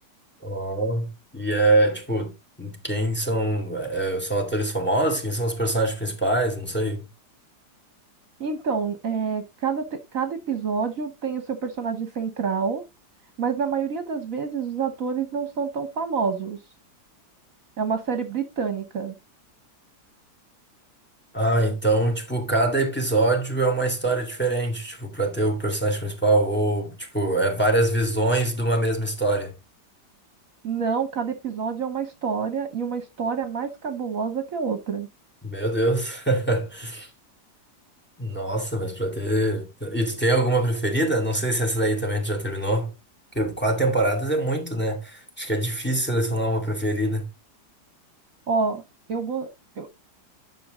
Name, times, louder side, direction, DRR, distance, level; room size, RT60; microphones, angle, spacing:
voice 1, 0.4-1.1 1.3-2.3 2.6-7.0 21.3-29.5 35.4-37.1 38.2-42.9 43.3-47.2, right 1 dB, 5° left, 2.3 m, -24 dB
voice 2, 8.4-12.8 13.4-16.6 17.8-19.1 30.6-35.1 48.5-48.8 49.1-49.5 49.8-49.9, right 5 dB, 55° right, 1.4 m, -27 dB
10.0 x 6.2 x 3.7 m
omnidirectional pair, 1.8 m